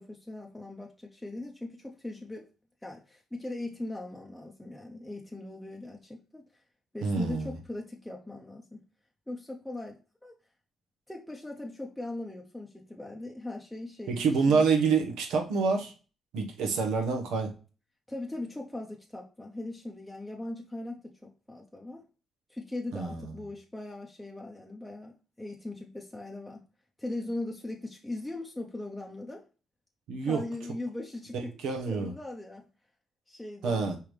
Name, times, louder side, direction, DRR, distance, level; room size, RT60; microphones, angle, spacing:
voice 1, 0.0-2.5 2.8-6.5 6.9-8.8 9.3-10.3 11.1-14.6 16.7-16.8 18.1-22.0 22.5-26.6 27.0-29.5 30.2-31.6 31.9-32.6 33.3-33.9, left 2 dB, 5° left, 0.7 m, -40 dB
voice 2, 7.0-7.5 14.1-15.9 16.3-17.5 22.9-23.3 30.1-30.4 31.6-32.1 33.6-34.0, right 5 dB, 85° right, 1.0 m, -27 dB
4.7 x 3.5 x 3.1 m
cardioid pair, 90°, 0 cm